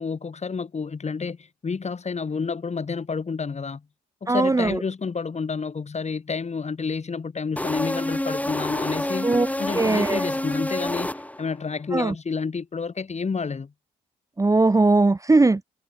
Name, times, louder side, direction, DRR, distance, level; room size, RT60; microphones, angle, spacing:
voice 1, 0.0-3.8 4.2-9.3 9.6-11.1 11.4-13.7, left 5 dB, 40° left, 3.6 m, -29 dB
voice 2, 4.3-4.7 9.2-9.5 9.8-10.2 11.9-12.1 14.4-15.6, right 3 dB, 20° right, 0.9 m, -19 dB
sound 1, 7.6-11.6, left 1 dB, 10° left, 4.5 m, -28 dB
supercardioid pair, 55°, 17 cm